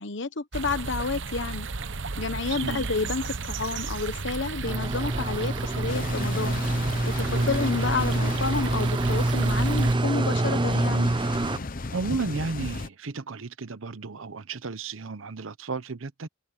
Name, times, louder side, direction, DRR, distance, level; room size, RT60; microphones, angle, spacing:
voice 1, 0.0-1.7 2.2-6.6 7.0-11.1, left 4 dB, 65° left, 1.1 m, -30 dB
sound 1, 0.5-10.0, right 4 dB, 65° right, 1.0 m, -34 dB
sound 2, 4.6-11.6, right 2 dB, 25° right, 0.6 m, -26 dB
sound 3, 5.9-12.9, left 3 dB, 45° left, 0.9 m, -37 dB
voice 2, 11.9-16.3, right 3 dB, 90° right, 0.9 m, -33 dB
head